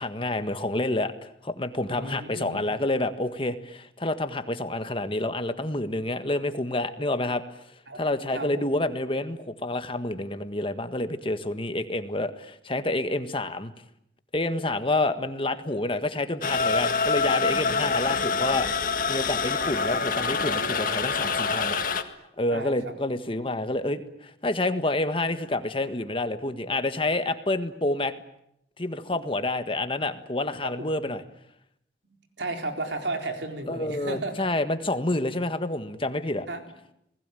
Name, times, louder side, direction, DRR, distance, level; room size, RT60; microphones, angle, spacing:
voice 1, 0.0-7.4 8.0-13.7 14.3-21.8 22.4-28.1 28.8-31.2 33.7-36.5, left 2 dB, 30° left, 9 dB, 1.6 m, -28 dB
voice 2, 1.9-2.8 7.9-8.0 8.3-8.7 22.5-22.9 29.1-29.3 30.6-31.0 32.4-34.5 36.5-36.6, right 2 dB, 80° right, 5 dB, 4.1 m, -34 dB
sound 1, 16.4-22.0, left 4 dB, 50° left, 2.0 m, -26 dB
28.5 x 20.0 x 9.2 m, 0.78 s
head